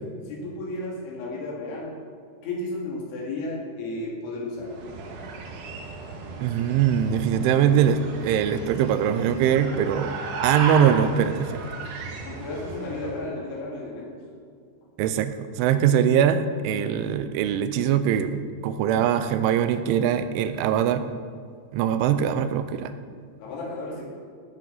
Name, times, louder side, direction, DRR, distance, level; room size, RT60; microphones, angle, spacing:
voice 1, 0.3-2.0 2.4-4.7 12.2-14.2 23.4-24.1, left 2 dB, 75° left, -3 dB, 4.8 m, -33 dB
sound 1, 4.6-13.2, right 4 dB, 70° right, 3.3 m, -35 dB
voice 2, 6.4-10.2 10.4-11.6 15.0-21.0 21.7-22.9, right 9 dB, 85° right, 10 dB, 3.1 m, -22 dB
16.5 x 9.0 x 4.1 m, 2.2 s
omnidirectional pair, 5.4 m